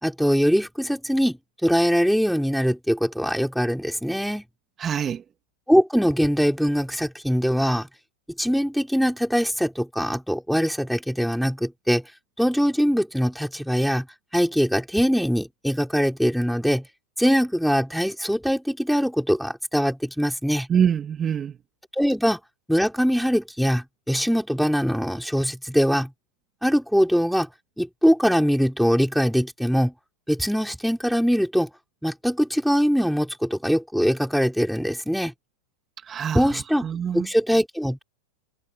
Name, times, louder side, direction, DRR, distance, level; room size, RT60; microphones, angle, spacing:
voice 1, 0.0-4.4 5.7-7.9 8.4-12.0 12.4-14.1 14.3-16.8 17.2-20.7 21.9-22.4 22.7-26.1 26.6-27.5 27.8-29.9 30.3-31.7 32.0-35.3 36.3-36.9 37.1-38.0, equal, ahead, 5.4 m, -22 dB
voice 2, 4.8-5.2 20.7-21.5 36.1-36.4 36.8-37.3, right 8 dB, 25° right, 2.3 m, -24 dB
hypercardioid pair, 115°, 0 cm